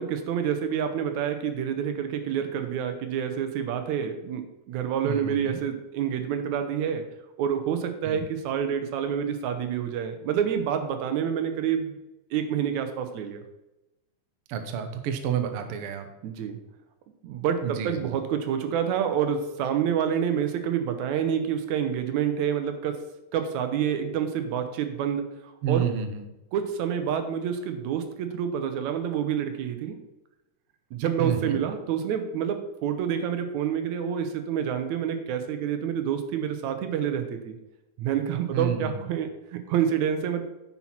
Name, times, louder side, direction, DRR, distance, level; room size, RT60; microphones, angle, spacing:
voice 1, 0.0-7.1 7.4-12.0 12.3-13.4 16.2-16.6 17.2-23.1 23.3-25.3 25.7-25.9 26.5-30.0 30.9-37.6 38.0-40.4, right 8 dB, 70° right, 7 dB, 2.0 m, -28 dB
voice 2, 5.0-5.6 8.0-8.3 14.5-16.1 17.6-18.2 25.6-26.3 31.2-31.6 38.5-39.1, right 8 dB, 90° right, 7 dB, 1.2 m, -30 dB
9.8 x 5.9 x 4.3 m, 0.95 s
omnidirectional pair, 3.8 m